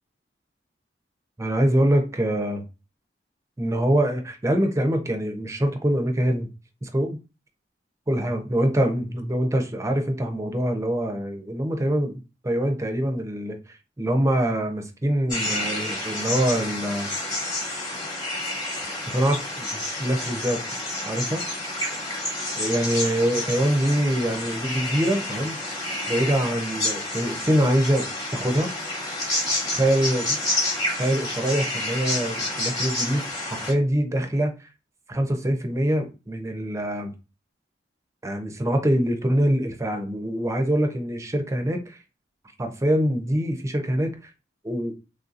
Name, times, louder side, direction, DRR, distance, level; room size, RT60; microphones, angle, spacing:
voice 1, 1.4-2.6 3.6-6.5 6.8-7.2 8.1-17.1 19.1-20.6 21.1-21.4 22.6-25.6 26.1-28.7 29.8-30.4 31.0-34.7 35.1-37.1 38.2-42.0 42.6-44.1 44.6-44.9, right 1 dB, 15° right, 0.5 m, -24 dB
sound 1, 15.3-33.7, left 1 dB, 20° left, 1.1 m, -29 dB
3.4 x 2.6 x 2.4 m
head